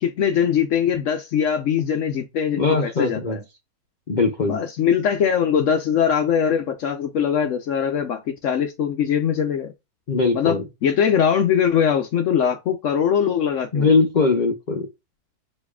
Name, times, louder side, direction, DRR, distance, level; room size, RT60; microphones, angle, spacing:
voice 1, 0.0-3.4 4.5-9.7 10.3-10.6 10.8-14.0, left 8 dB, 65° left, 0.7 m, -21 dB
voice 2, 2.6-3.4 4.1-4.5 10.1-10.6 13.7-14.9, left 4 dB, 90° left, 0.4 m, -20 dB
6.3 x 3.0 x 2.3 m
omnidirectional pair, 1.8 m